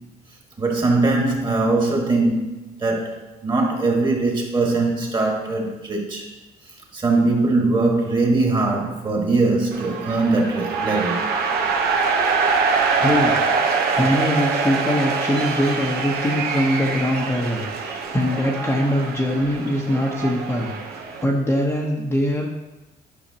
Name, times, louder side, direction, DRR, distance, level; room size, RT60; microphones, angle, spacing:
voice 1, 0.6-6.3 6.9-11.2, right 3 dB, 25° right, 1.9 m, -21 dB
sound 1, 9.7-21.2, right 5 dB, 70° right, 0.9 m, -24 dB
voice 2, 13.0-13.3 14.0-22.5, equal, 15° left, 1.0 m, -22 dB
10.5 x 5.7 x 2.9 m
cardioid pair, 110°, 17 cm